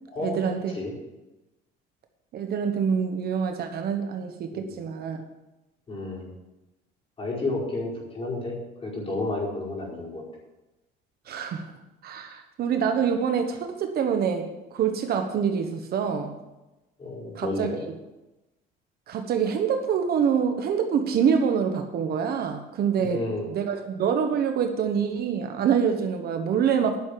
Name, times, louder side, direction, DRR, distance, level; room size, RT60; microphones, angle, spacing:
voice 1, 0.2-0.7 2.3-5.2 11.3-11.7 12.0-16.4 17.3-17.8 19.1-27.0, right 7 dB, 50° right, 6 dB, 1.2 m, -26 dB
voice 2, 5.9-6.3 7.2-10.2 17.0-17.8 23.0-23.5, left 2 dB, 30° left, -5 dB, 4.9 m, -31 dB
11.0 x 6.4 x 8.4 m, 1.0 s
cardioid pair, 145°, 20 cm